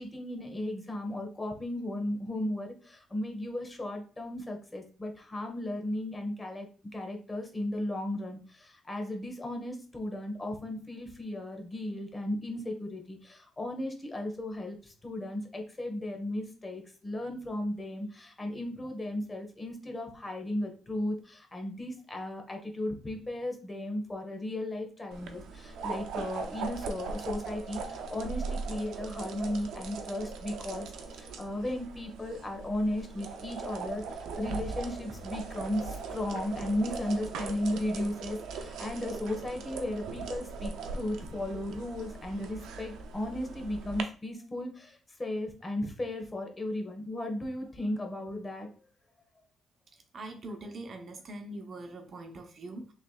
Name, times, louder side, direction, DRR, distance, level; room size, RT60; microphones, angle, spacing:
voice 1, 0.0-48.7, left 1 dB, 20° left, 3 dB, 1.4 m, -35 dB
sound 1, 25.1-44.0, right 4 dB, 85° right, 0.6 m, -40 dB
voice 2, 50.1-52.9, right 2 dB, 50° right, 5 dB, 0.9 m, -42 dB
5.9 x 3.3 x 2.4 m, 0.38 s
cardioid pair, 90°, 0 cm